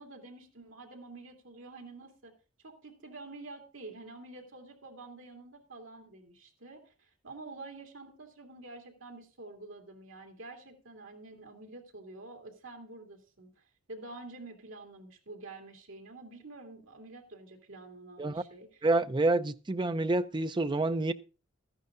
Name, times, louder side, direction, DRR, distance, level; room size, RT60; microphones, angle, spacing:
voice 1, 0.0-2.3 2.6-18.9, right 2 dB, 75° right, 2.7 m, -48 dB
voice 2, 18.8-21.1, right 2 dB, 20° right, 0.5 m, -28 dB
13.5 x 11.0 x 3.8 m
head